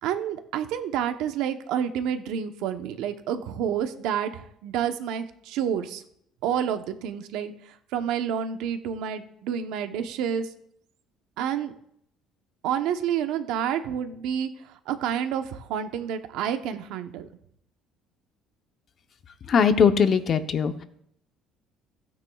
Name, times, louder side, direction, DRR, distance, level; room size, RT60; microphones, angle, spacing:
voice 1, 0.0-6.0 6.4-10.5 11.4-11.7 12.6-17.3, right 8 dB, 80° right, 8 dB, 0.9 m, -29 dB
voice 2, 19.5-20.8, left 6 dB, 45° left, 9 dB, 0.8 m, -20 dB
16.0 x 9.5 x 2.4 m, 0.71 s
cardioid pair, 120°, 0 cm